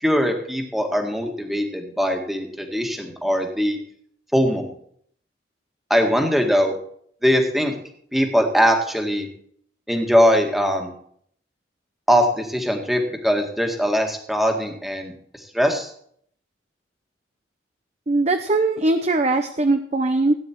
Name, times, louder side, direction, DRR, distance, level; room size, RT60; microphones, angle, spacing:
voice 1, 0.0-3.8 4.3-4.7 5.9-6.7 7.2-7.8 8.1-9.3 9.9-10.9 12.1-15.1 15.5-15.9, equal, ahead, 3 dB, 1.9 m, -21 dB
voice 2, 18.1-20.4, right 2 dB, 35° right, 7 dB, 0.7 m, -20 dB
16.5 x 9.6 x 4.5 m, 0.62 s
head